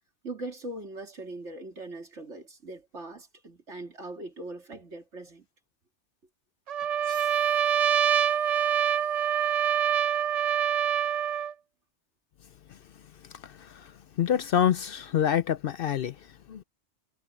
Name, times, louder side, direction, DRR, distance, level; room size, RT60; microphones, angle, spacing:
voice 1, 0.2-5.5, right 2 dB, 75° right, 3.2 m, -40 dB
Trumpet, 6.7-11.5, right 9 dB, 60° right, 0.4 m, -25 dB
sound 1, 7.0-10.3, equal, 45° left, 7.1 m, -56 dB
voice 2, 13.4-13.9 14.2-16.2 16.5-16.6, left 9 dB, 60° left, 0.7 m, -26 dB
omnidirectional pair, 1.2 m